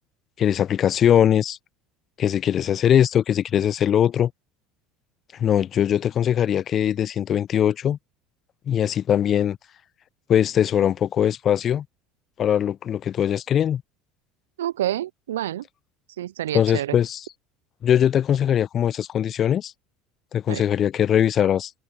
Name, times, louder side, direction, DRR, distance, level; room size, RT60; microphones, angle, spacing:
voice 1, 0.4-1.6 2.2-4.3 5.4-8.0 8.7-9.6 10.3-11.8 12.4-13.8 16.5-17.3 17.8-19.7 20.3-21.7, left 9 dB, 45° left, 0.3 m, -21 dB
voice 2, 14.6-15.6 16.2-17.0 20.5-20.6, right 12 dB, 80° right, 0.3 m, -28 dB
open air
hypercardioid pair, 70°, 0 cm